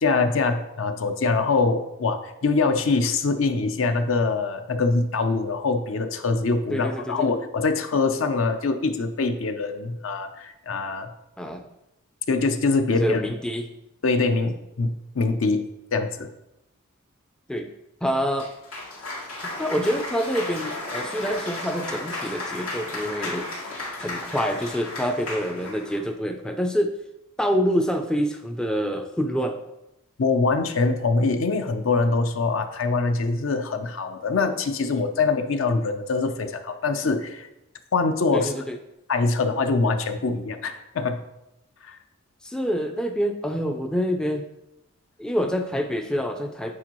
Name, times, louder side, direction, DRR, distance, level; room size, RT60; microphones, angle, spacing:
voice 1, 0.0-11.1 12.3-13.2 14.0-15.6 15.9-16.3 30.2-37.5 37.9-38.5 39.1-41.2 41.8-42.0, left 3 dB, 60° left, 8 dB, 0.5 m, -24 dB
voice 2, 6.7-7.3 11.4-11.6 12.9-13.7 17.5-17.7 18.0-18.5 19.4-23.5 24.0-26.9 27.4-29.6 38.3-38.8 42.4-44.5 45.2-46.8, equal, 5° left, 4 dB, 0.3 m, -26 dB
Cheering / Applause, 18.4-26.0, left 2 dB, 85° left, 2.1 m, -34 dB
8.5 x 4.4 x 3.0 m, 0.89 s
head